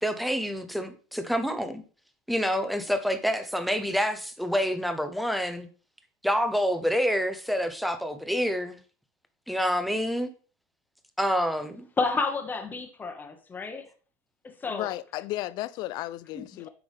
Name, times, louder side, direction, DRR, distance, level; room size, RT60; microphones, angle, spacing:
voice 1, 0.0-1.8 2.3-5.7 6.2-8.8 9.5-10.3 11.2-11.9, equal, ahead, 0.8 m, -27 dB
voice 2, 12.0-13.9 14.4-14.9 16.3-16.7, left 4 dB, 20° left, 1.2 m, -31 dB
voice 3, 14.6-16.7, left 16 dB, 60° left, 0.4 m, -34 dB
9.3 x 3.5 x 3.4 m
supercardioid pair, 105°, 8 cm